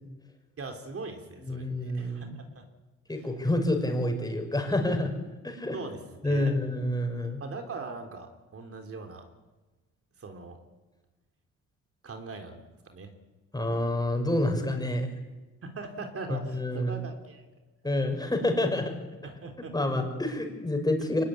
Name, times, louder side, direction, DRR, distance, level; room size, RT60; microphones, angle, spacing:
voice 1, 0.6-2.3 2.5-2.6 3.2-3.3 5.7-6.5 7.4-9.2 10.2-10.6 12.0-13.1 15.6-17.4 19.2-19.7, right 3 dB, 50° right, 4 dB, 3.6 m, -41 dB
voice 2, 1.5-2.4 3.1-5.1 5.4-5.8 6.2-7.4 13.5-15.1 16.3-17.0 17.8-18.9 19.7-21.2, left 1 dB, 15° left, 4 dB, 5.9 m, -28 dB
24.0 x 20.0 x 9.7 m, 1.1 s
cardioid pair, 90°, 30 cm